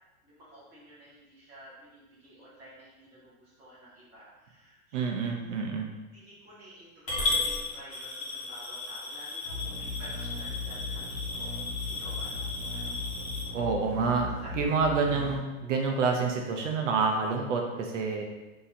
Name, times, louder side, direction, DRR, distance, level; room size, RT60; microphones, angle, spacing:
voice 1, 0.2-5.6 6.1-13.1 13.9-14.1 14.4-14.7, right 1 dB, 5° right, -12 dB, 0.7 m, -51 dB
voice 2, 4.9-5.9 13.5-14.3 14.5-18.2, right 4 dB, 60° right, 2 dB, 0.6 m, -28 dB
Coin (dropping) / Glass, 7.1-13.4, left 3 dB, 30° left, 1.4 m, -35 dB
sound 1, 9.5-15.4, left 3 dB, 35° right, 1.0 m, -38 dB
3.7 x 2.8 x 4.2 m, 1.1 s
supercardioid pair, 180°, 43 cm